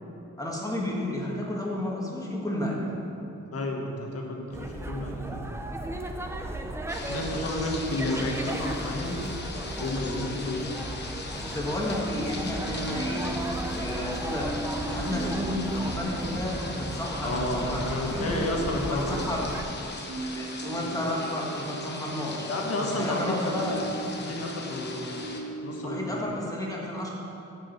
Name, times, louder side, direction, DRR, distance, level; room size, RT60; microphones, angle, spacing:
voice 1, 0.4-2.9 7.3-7.7 11.3-13.3 13.7-14.5 14.9-18.4 18.8-19.8 20.3-22.5 22.8-23.8 25.8-27.1, left 1 dB, 10° left, -3 dB, 1.4 m, -32 dB
voice 2, 3.5-5.5 7.1-9.2 9.8-10.8 17.2-19.5 22.5-23.8 24.2-25.1 25.6-26.2, left 1 dB, 50° left, 0 dB, 1.3 m, -31 dB
sound 1, 4.5-19.6, right 1 dB, 10° right, 0.4 m, -36 dB
sound 2, 6.9-25.4, left 3 dB, 35° left, 0.9 m, -40 dB
sound 3, 8.8-11.7 12.1-26.2, right 2 dB, 65° right, 1.0 m, -40 dB
9.3 x 4.9 x 7.2 m, 2.9 s
wide cardioid pair, 165°, 30 cm